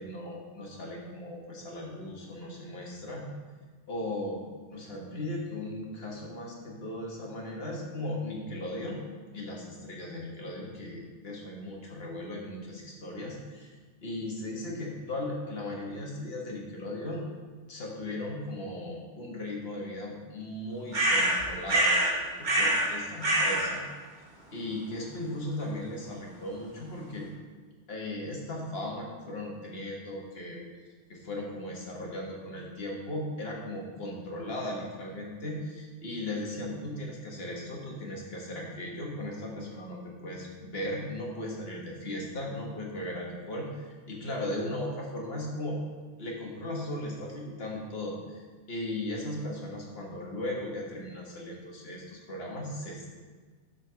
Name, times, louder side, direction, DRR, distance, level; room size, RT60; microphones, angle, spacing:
voice 1, 0.0-3.3 3.9-4.4 4.7-9.0 9.3-13.7 14.0-17.2 17.7-23.8 24.5-27.3 27.9-30.6 31.1-45.8 46.2-53.1, left 1 dB, 60° left, -1 dB, 1.6 m, -37 dB
sound 1, 20.9-22.1 22.4-22.9 23.2-23.7, right 1 dB, 40° right, 1.6 m, -25 dB
7.8 x 4.2 x 5.7 m, 1.4 s
omnidirectional pair, 1.2 m